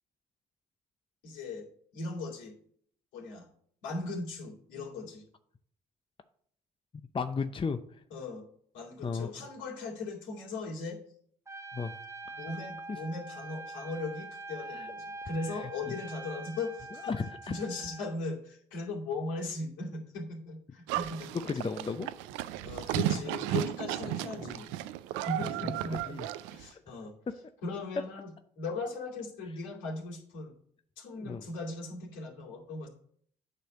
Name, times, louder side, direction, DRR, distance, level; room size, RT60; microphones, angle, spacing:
voice 1, 1.2-1.7 1.9-2.5 3.1-3.5 3.8-5.2 8.1-8.5 8.7-11.0 12.4-17.2 17.5-21.5 22.6-24.7 25.2-26.2 26.5-27.1 27.6-28.3 28.6-30.5 31.0-32.9, left 3 dB, 75° left, -3 dB, 2.5 m, -38 dB
voice 2, 7.1-8.0 9.0-9.3 11.7-11.9 12.9-13.0 14.7-14.9 15.4-15.7 17.0-17.6 21.4-22.1 24.0-24.6 26.1-26.3 26.7-26.8 31.1-31.4, left 5 dB, 25° left, 9 dB, 0.6 m, -35 dB
Trumpet, 11.5-18.2, right 3 dB, 15° right, 0.8 m, -44 dB
Livestock farm animals working animals, 20.9-26.7, right 13 dB, 85° right, 0.4 m, -34 dB
9.0 x 3.4 x 6.6 m, 0.62 s
hypercardioid pair, 50°, 19 cm